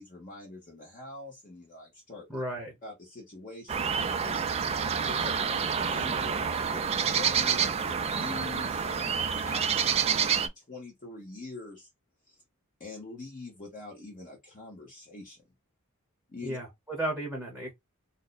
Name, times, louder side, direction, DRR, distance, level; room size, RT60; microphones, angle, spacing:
voice 1, 0.0-2.3 2.8-4.4 5.0-11.9 12.3-12.4 12.8-15.4 16.3-16.6, left 3 dB, 40° left, 0.9 m, -44 dB
voice 2, 2.3-2.7 16.4-17.7, right 1 dB, ahead, 0.8 m, -34 dB
sound 1, 3.7-10.5, right 7 dB, 30° right, 0.3 m, -28 dB
2.8 x 2.1 x 3.8 m
head